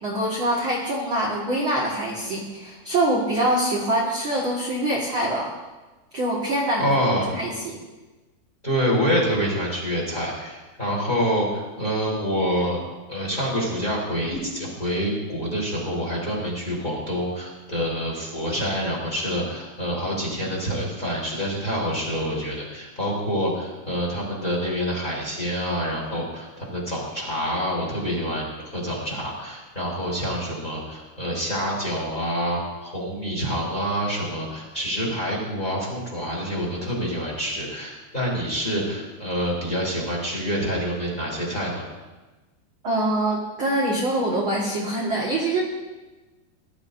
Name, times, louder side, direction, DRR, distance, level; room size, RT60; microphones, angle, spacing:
voice 1, 0.0-5.5 6.1-7.1 7.3-7.8 42.8-45.6, right 1 dB, 45° right, -6 dB, 1.8 m, -24 dB
voice 2, 6.8-7.3 8.6-12.8 13.1-41.8, equal, 10° left, -4 dB, 3.6 m, -27 dB
20.0 x 12.0 x 2.7 m, 1.2 s
omnidirectional pair, 4.6 m